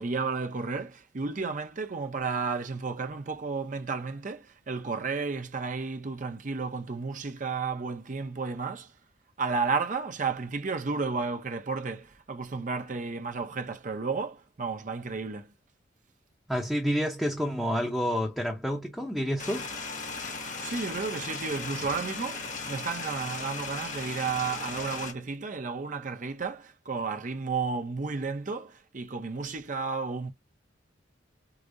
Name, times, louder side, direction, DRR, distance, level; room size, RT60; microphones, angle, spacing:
voice 1, 0.0-8.9 9.4-15.5 20.6-30.3, right 4 dB, 45° right, 0.6 m, -32 dB
voice 2, 16.5-19.7, equal, ahead, 0.6 m, -29 dB
sound 1, 19.4-25.1, left 4 dB, 45° left, 1.0 m, -37 dB
4.8 x 2.0 x 2.5 m
head